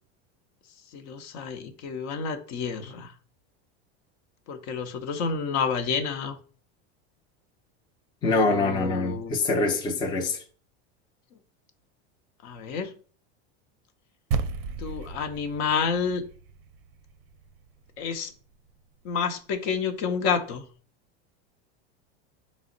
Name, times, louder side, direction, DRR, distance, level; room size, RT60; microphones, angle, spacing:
voice 1, 0.9-3.1 4.5-6.4 8.3-9.4 12.4-12.9 14.8-16.2 18.0-18.3 19.0-20.6, left 6 dB, 55° left, 0.7 m, -29 dB
voice 2, 8.2-10.4, left 3 dB, 15° left, 0.4 m, -24 dB
sound 1, 14.3-18.8, right 5 dB, 55° right, 0.5 m, -35 dB
4.9 x 2.0 x 3.8 m
supercardioid pair, 135°, 33 cm